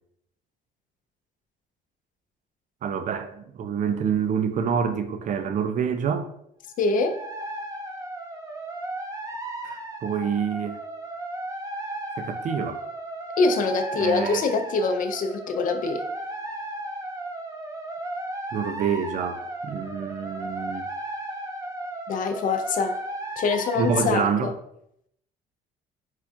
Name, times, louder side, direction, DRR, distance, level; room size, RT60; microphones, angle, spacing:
voice 1, 2.8-6.3 9.6-10.8 12.2-12.8 14.0-14.4 18.5-20.9 23.8-24.5, right 7 dB, 50° right, 0.5 m, -27 dB
sound 1, 6.7-24.1, right 1 dB, 20° right, 0.8 m, -35 dB
voice 2, 6.8-7.2 13.4-16.0 22.1-23.0 23.4-24.5, left 4 dB, 50° left, 0.5 m, -24 dB
4.5 x 2.4 x 4.2 m
cardioid pair, 110°, 17 cm